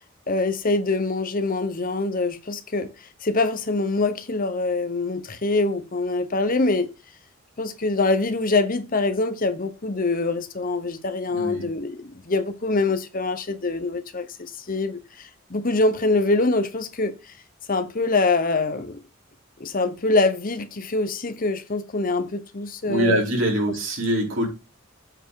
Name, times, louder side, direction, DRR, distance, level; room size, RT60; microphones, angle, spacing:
voice 1, 0.3-2.9 3.2-6.9 7.6-17.3 17.7-19.0 19.6-23.2, left 3 dB, 45° left, 1.0 m, -24 dB
voice 2, 11.3-11.7 22.9-24.5, right 1 dB, 70° right, 4.0 m, -23 dB
7.7 x 4.5 x 4.7 m
head